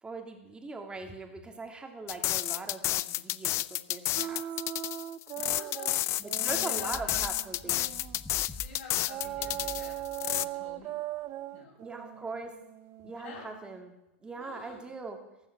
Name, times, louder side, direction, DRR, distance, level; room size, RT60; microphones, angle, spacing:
voice 1, 0.0-4.4 6.2-7.9 11.8-12.5 13.0-13.9 14.2-15.2, right 3 dB, 15° right, 3 dB, 3.0 m, -41 dB
sound 1, 2.1-10.4, left 17 dB, 40° left, 0.5 m, -31 dB
sound 2, 4.2-8.3 9.1-13.8, right 13 dB, 40° right, 0.7 m, -40 dB
voice 2, 5.3-6.0 6.3-7.2 8.5-11.0 11.5-11.8 12.1-12.3 13.2-13.5 14.3-14.9, left 4 dB, 70° left, 1 dB, 6.7 m, -48 dB
sound 3, 6.9-10.4 10.7-10.8, left 1 dB, 10° left, 1.2 m, -47 dB
14.5 x 13.5 x 6.3 m, 0.91 s
hypercardioid pair, 115°, 7 cm